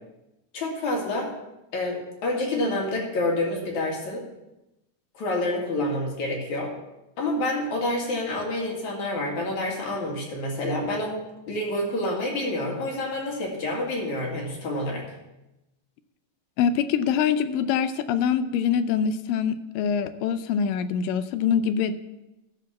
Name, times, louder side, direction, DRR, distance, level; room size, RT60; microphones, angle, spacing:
voice 1, 0.5-1.3 1.7-4.2 5.1-6.7 7.2-11.2 11.5-15.0, left 1 dB, 60° left, -1 dB, 3.4 m, -28 dB
voice 2, 16.6-21.9, left 7 dB, 90° left, 11 dB, 2.3 m, -24 dB
13.0 x 5.3 x 7.1 m, 0.95 s
omnidirectional pair, 3.8 m